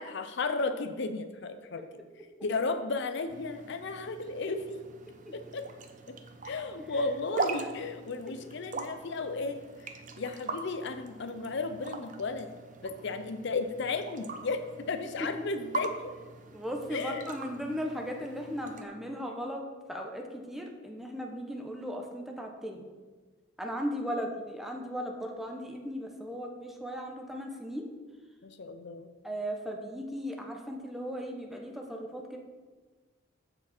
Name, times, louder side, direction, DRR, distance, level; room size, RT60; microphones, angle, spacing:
voice 1, 0.0-1.9 2.4-4.8 5.3-5.7 6.1-6.2 6.4-12.5 12.8-16.1 16.9-17.3 28.4-29.1, left 3 dB, 60° left, 9 dB, 0.6 m, -34 dB
sound 1, 3.3-18.8, right 3 dB, 40° right, 0.7 m, -41 dB
voice 2, 16.5-22.9 23.6-27.9 29.2-32.4, equal, ahead, 1 dB, 0.9 m, -37 dB
14.0 x 4.9 x 4.3 m, 1.4 s
head